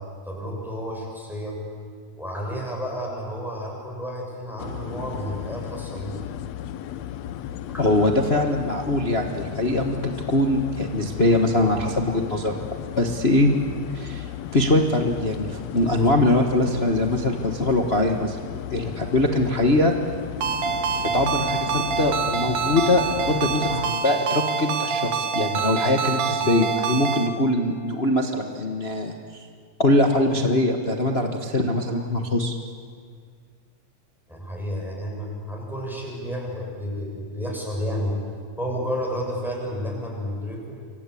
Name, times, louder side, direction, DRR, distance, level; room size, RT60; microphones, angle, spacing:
voice 1, 0.2-1.6 2.1-6.2 7.7-7.8 34.3-38.2 38.6-40.8, equal, ahead, -2 dB, 6.8 m, -31 dB
sound 1, 4.6-23.9, left 11 dB, 70° left, 1.9 m, -35 dB
voice 2, 7.8-12.6 13.0-13.5 13.9-18.4 18.7-19.9 21.1-29.2 29.8-32.6, left 1 dB, 50° left, 3 dB, 0.7 m, -22 dB
Ringtone, 20.4-27.3, right 6 dB, 80° right, 3.1 m, -26 dB
28.5 x 24.0 x 8.5 m, 2.1 s
omnidirectional pair, 3.6 m